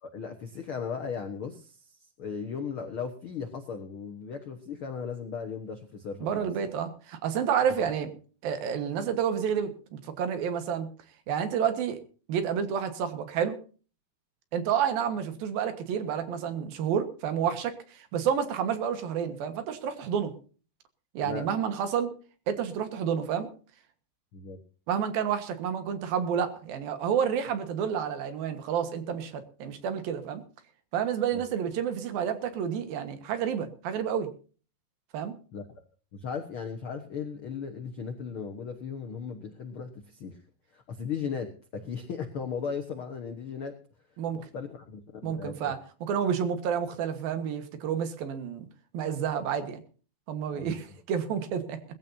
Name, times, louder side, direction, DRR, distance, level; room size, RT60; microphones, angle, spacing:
voice 1, 0.0-6.5 7.8-7.9 21.2-21.4 24.3-24.6 31.3-31.4 35.5-35.8 36.1-40.4 40.7-43.8 44.3-45.7 50.5-50.8, left 6 dB, 85° left, 6 dB, 1.1 m, -37 dB
voice 2, 6.2-8.1 8.4-10.9 11.3-12.0 12.3-13.6 14.5-20.3 21.1-22.1 22.5-23.5 24.9-30.4 30.9-34.3 35.1-35.3 44.2-44.4 45.2-48.7 48.9-49.8 50.3-51.8, right 8 dB, 75° right, 9 dB, 3.2 m, -30 dB
20.5 x 15.0 x 2.7 m, 0.38 s
omnidirectional pair, 4.4 m